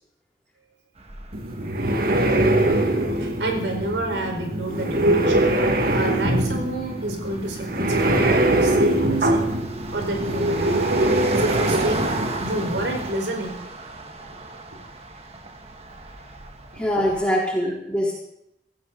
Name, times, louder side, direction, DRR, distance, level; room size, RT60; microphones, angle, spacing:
sound 1, 1.0-17.3, right 2 dB, 35° right, 1.8 m, -36 dB
sound 2, 1.3-13.1, right 1 dB, 55° right, 2.0 m, -22 dB
voice 1, 3.2-5.6 5.9-9.4 9.9-13.6, right 1 dB, 90° right, 2 dB, 4.8 m, -29 dB
voice 2, 16.7-18.2, equal, 5° left, -5 dB, 4.9 m, -23 dB
18.5 x 16.5 x 4.0 m, 0.77 s
head